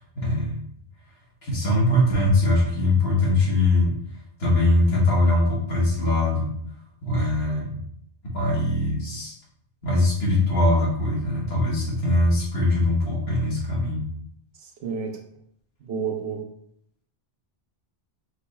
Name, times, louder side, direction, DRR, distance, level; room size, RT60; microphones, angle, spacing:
voice 1, 0.1-0.6 1.4-3.9 4.4-6.5 7.0-7.8 8.3-9.3 9.8-14.0, left 1 dB, 80° left, -4 dB, 1.5 m, -21 dB
voice 2, 14.6-15.1 15.8-16.5, right 6 dB, 85° right, 2 dB, 1.0 m, -30 dB
4.5 x 2.2 x 3.0 m, 0.68 s
omnidirectional pair, 1.0 m